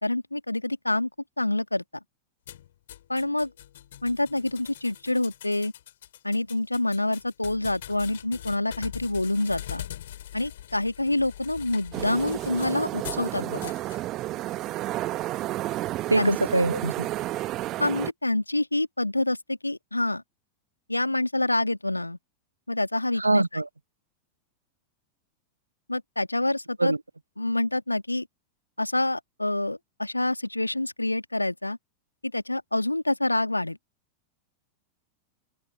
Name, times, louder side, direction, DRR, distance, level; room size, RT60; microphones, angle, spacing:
voice 1, 0.0-1.1 1.4-1.8 3.1-3.5 4.0-5.7 6.2-9.8 10.3-13.7 16.2-16.4 17.8-20.2 20.9-22.2 22.7-23.4 25.9-26.9 27.4-28.3 28.8-31.8 32.2-33.8, left 2 dB, 85° left, 2.1 m, -27 dB
sound 1, 2.5-13.3 13.6-14.0, left 12 dB, 60° left, 3.3 m, -42 dB
sound 2, 11.9-18.1, right 16 dB, 35° right, 1.2 m, -31 dB
voice 2, 16.1-17.1 23.2-23.6 26.8-27.0, right 2 dB, 85° right, 0.3 m, -23 dB
open air
figure-of-eight pair, 90°, 0 cm